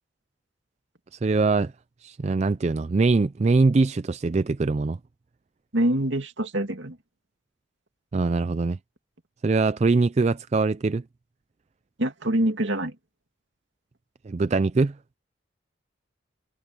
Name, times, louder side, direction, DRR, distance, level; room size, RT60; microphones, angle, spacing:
voice 1, 1.1-1.7 2.0-5.0 8.1-8.8 9.4-11.0 14.2-15.0, right 3 dB, 35° right, 0.4 m, -22 dB
voice 2, 5.7-7.0 12.0-12.9, right 1 dB, 70° right, 2.5 m, -25 dB
head